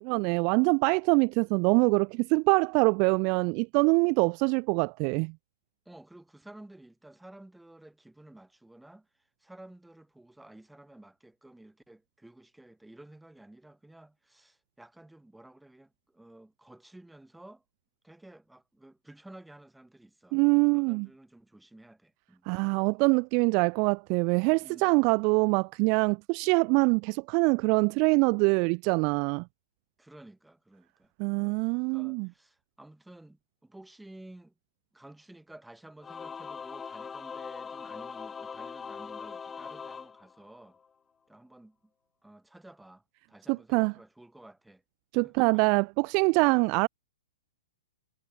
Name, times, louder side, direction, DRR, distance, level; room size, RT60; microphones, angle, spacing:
voice 1, 0.0-5.3 20.3-21.1 22.5-29.4 31.2-32.3 43.5-43.9 45.1-46.9, right 35 dB, 40° right, 0.5 m, -24 dB
voice 2, 5.8-9.1 9.4-17.6 18.0-22.5 24.6-24.9 30.0-31.1 31.4-31.6 31.9-34.5 34.9-40.8 41.3-41.8 42.2-44.8 45.2-45.6 46.4-46.6, right 1 dB, 5° right, 3.3 m, -53 dB
Singing / Musical instrument, 36.0-40.9, left 6 dB, 15° left, 0.6 m, -41 dB
hypercardioid pair, 120°, 0 cm